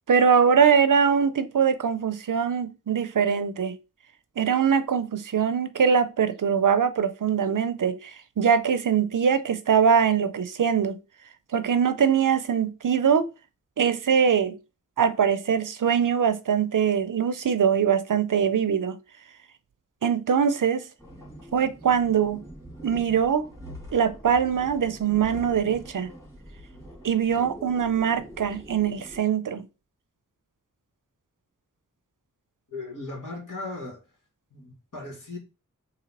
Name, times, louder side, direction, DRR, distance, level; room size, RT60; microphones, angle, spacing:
voice 1, 0.1-3.8 4.4-8.1 8.4-11.0 11.5-13.3 13.8-14.6 15.0-19.0 20.0-20.8 21.5-22.4 22.8-23.5 23.9-26.1 27.0-29.6, right 7 dB, 65° right, 0.6 m, -22 dB
sound 1, 21.0-29.2, equal, 10° left, 2.1 m, -44 dB
voice 2, 32.7-34.0 34.5-35.4, left 2 dB, 65° left, 2.1 m, -37 dB
4.1 x 2.8 x 4.1 m
cardioid pair, 45°, 34 cm